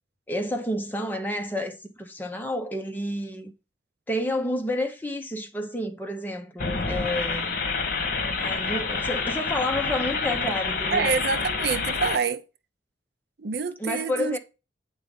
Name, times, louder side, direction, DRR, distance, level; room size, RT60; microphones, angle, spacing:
voice 1, 0.3-3.5 4.1-7.6 8.4-11.1 13.8-14.4, left 1 dB, 10° left, 1.0 m, -30 dB
sound 1, 6.6-12.2, left 4 dB, 50° left, 1.3 m, -28 dB
voice 2, 10.9-12.4 13.4-14.4, right 5 dB, 60° right, 0.6 m, -26 dB
8.8 x 3.9 x 5.3 m
head